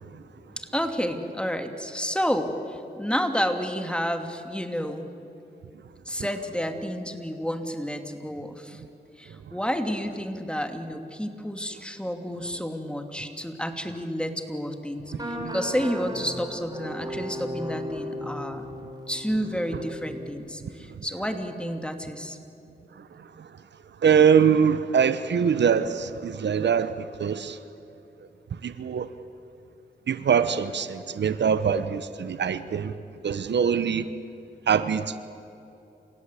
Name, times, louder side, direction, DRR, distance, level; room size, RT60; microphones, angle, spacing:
voice 1, 0.6-5.1 6.1-8.8 9.2-18.6 19.1-22.4, equal, 5° left, 6 dB, 2.8 m, -30 dB
sound 1, 15.1-20.3, equal, 20° right, 6.6 m, -36 dB
voice 2, 24.0-26.9 27.2-27.6 28.6-29.1 30.1-32.9 33.2-34.1 34.7-35.2, right 7 dB, 75° right, 13 dB, 0.9 m, -23 dB
28.5 x 16.5 x 8.4 m, 2.8 s
cardioid pair, 45°, 18 cm